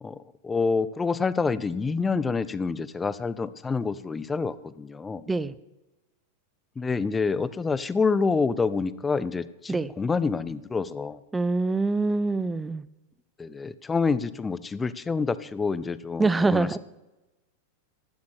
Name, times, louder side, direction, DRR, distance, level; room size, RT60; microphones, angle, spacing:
voice 1, 0.0-5.3 6.8-11.2 13.4-16.8, left 4 dB, 15° left, 17 dB, 0.8 m, -27 dB
voice 2, 11.3-12.8 16.2-16.8, right 3 dB, 10° right, 18 dB, 0.8 m, -24 dB
15.5 x 12.0 x 6.6 m, 1.0 s
hypercardioid pair, 100°, 0 cm